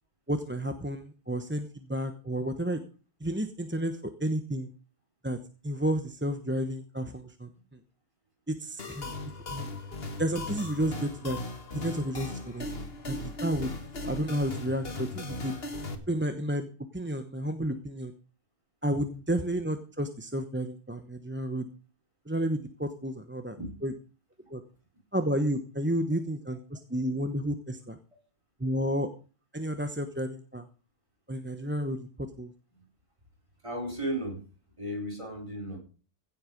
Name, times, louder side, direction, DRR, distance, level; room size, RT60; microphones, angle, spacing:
voice 1, 0.3-2.8 3.2-4.7 5.2-5.4 5.6-7.8 8.5-9.1 9.5-9.7 10.2-11.4 11.7-12.7 13.1-13.7 14.0-15.5 16.1-16.7 16.9-18.1 18.8-21.7 22.3-23.9 24.5-24.6 25.1-28.0 28.6-29.1 29.5-30.7 31.3-32.1 32.4-32.5, right 1 dB, 10° right, 8 dB, 0.9 m, -31 dB
sound 1, 8.8-15.9, left 2 dB, 60° left, 2.0 m, -38 dB
voice 2, 33.6-34.4 34.8-35.8, right 1 dB, 25° right, 1 dB, 4.6 m, -34 dB
16.5 x 7.8 x 5.2 m, 0.37 s
omnidirectional pair, 1.2 m